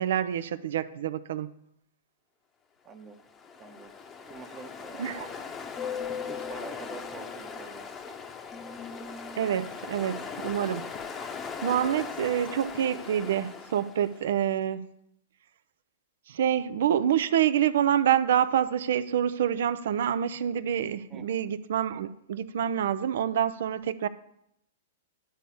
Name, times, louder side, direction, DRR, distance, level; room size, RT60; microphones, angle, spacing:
voice 1, 0.0-1.5 5.0-5.3 9.4-10.9 11.6-14.9 16.3-24.1, right 10 dB, 65° right, 15 dB, 0.4 m, -27 dB
voice 2, 2.8-3.2 3.6-5.4 6.3-8.1 21.1-21.5, right 5 dB, 25° right, 5 dB, 0.9 m, -46 dB
Ocean, 3.2-14.3, left 6 dB, 25° left, 0.8 m, -39 dB
10.0 x 4.0 x 7.0 m, 0.78 s
figure-of-eight pair, 105°, 0 cm